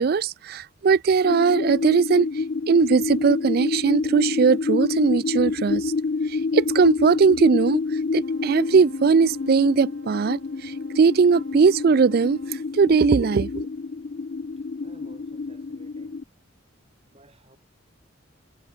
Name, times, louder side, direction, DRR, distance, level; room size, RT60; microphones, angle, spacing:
voice 1, 0.0-2.3 2.7-5.9 6.3-7.8 8.1-12.4 12.7-13.7, right 5 dB, 50° right, 0.4 m, -19 dB
sound 1, 1.2-16.2, left 4 dB, 45° left, 0.4 m, -28 dB
Wind instrument woodwind instrument, 8.2-12.7, right 3 dB, 80° right, 2.6 m, -53 dB
voice 2, 14.6-16.3 17.1-17.6, right 1 dB, 30° right, 3.7 m, -55 dB
head